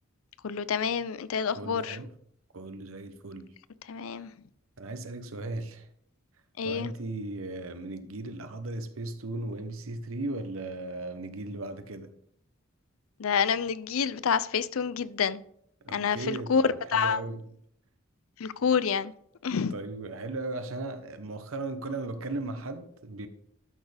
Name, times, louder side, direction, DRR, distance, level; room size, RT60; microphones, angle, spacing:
voice 1, 0.4-2.0 3.9-4.3 6.6-6.9 13.2-15.4 15.9-16.6 16.9-17.2 18.4-19.1 19.4-19.7, left 6 dB, 80° left, 0.5 m, -28 dB
voice 2, 1.5-2.1 2.5-3.5 4.8-5.9 6.6-12.1 15.8-17.5 19.5-23.3, right 2 dB, 80° right, 0.9 m, -37 dB
12.5 x 6.5 x 3.4 m
head